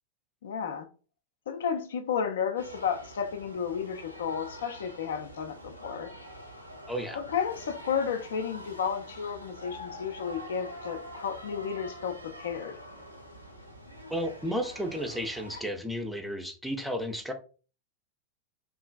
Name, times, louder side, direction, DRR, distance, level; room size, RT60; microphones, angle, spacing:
voice 1, 0.4-0.9 1.5-6.1 7.1-12.8, left 7 dB, 60° left, 0.4 m, -32 dB
sound 1, 2.6-15.6, equal, 90° right, 0.5 m, -45 dB
voice 2, 6.9-7.2 14.1-17.3, equal, ahead, 0.5 m, -33 dB
3.1 x 2.4 x 2.2 m
figure-of-eight pair, 90°, 0 cm